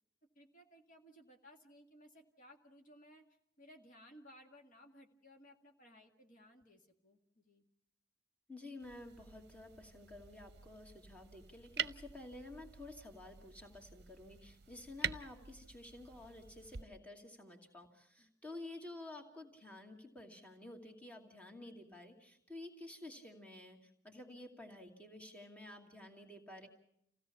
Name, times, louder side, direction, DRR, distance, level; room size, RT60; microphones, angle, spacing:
voice 1, 0.4-3.2 3.6-7.6 18.2-18.3, equal, 50° left, 2 dB, 1.9 m, -60 dB
voice 2, 8.5-26.7, left 2 dB, 10° left, 0 dB, 2.5 m, -51 dB
sound 1, 8.8-16.8, right 8 dB, 65° right, 0.7 m, -46 dB
28.5 x 16.5 x 5.8 m, 0.74 s
head